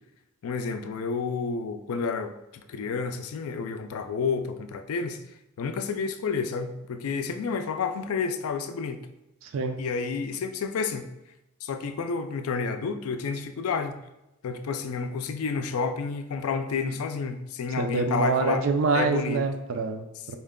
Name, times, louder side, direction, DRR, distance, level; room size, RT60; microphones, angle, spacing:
voice 1, 0.4-5.2 5.6-9.0 9.8-11.1 11.6-14.0 14.4-18.7 18.9-19.4, left 5 dB, 80° left, 9 dB, 0.4 m, -30 dB
voice 2, 9.4-9.8 17.8-20.4, right 4 dB, 70° right, 6 dB, 0.4 m, -26 dB
4.3 x 2.2 x 3.6 m, 0.93 s
head